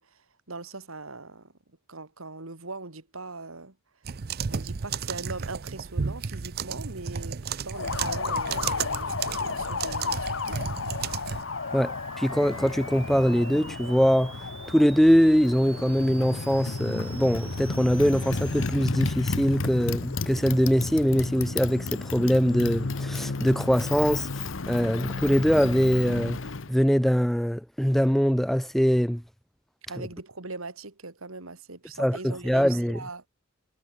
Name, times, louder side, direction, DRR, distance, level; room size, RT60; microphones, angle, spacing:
voice 1, 0.0-1.5 1.9-3.8 4.5-10.6 29.9-33.2, right 3 dB, 75° right, 2.7 m, -41 dB
sound 1, 4.0-11.4, right 6 dB, 45° right, 0.5 m, -33 dB
Motorcycle, 7.7-26.7, left 4 dB, 65° left, 0.9 m, -32 dB
sound 2, 11.3-18.7, right 6 dB, 25° right, 7.4 m, -47 dB
voice 2, 11.7-14.4 14.7-26.4 26.7-29.2 32.0-33.0, equal, ahead, 0.4 m, -23 dB
head